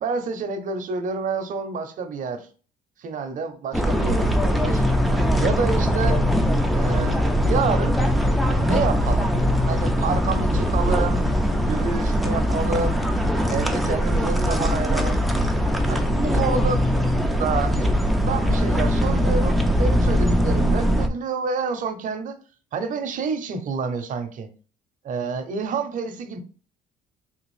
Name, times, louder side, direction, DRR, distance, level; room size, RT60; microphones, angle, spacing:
voice 1, 0.0-2.5 3.0-4.8 5.4-6.2 6.7-8.0 8.6-9.3 9.7-11.2 11.7-13.0 13.5-15.6 15.9-16.9 17.4-22.4 22.7-24.5 25.0-26.4, right 5 dB, 50° right, 0.7 m, -28 dB
sound 1, 3.7-21.1, equal, ahead, 0.4 m, -21 dB
3.5 x 2.4 x 3.1 m
cardioid pair, 110°, 17 cm